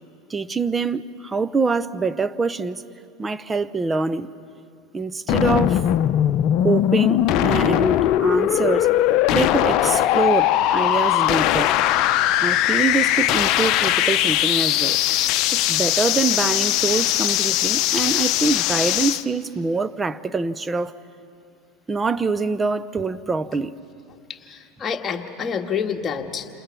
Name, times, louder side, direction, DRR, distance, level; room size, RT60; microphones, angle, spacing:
voice 1, 0.3-2.8 3.2-4.3 4.9-5.8 6.6-8.9 9.3-11.8 12.4-15.0 15.5-20.9 21.9-23.7, right 4 dB, 20° right, 14 dB, 0.8 m, -24 dB
sound 1, 5.3-19.2, left 13 dB, 55° left, 0.8 m, -20 dB
voice 2, 24.3-26.5, left 6 dB, 30° left, 3 dB, 1.8 m, -28 dB
28.5 x 27.5 x 5.9 m, 2.5 s
hypercardioid pair, 85°, 0 cm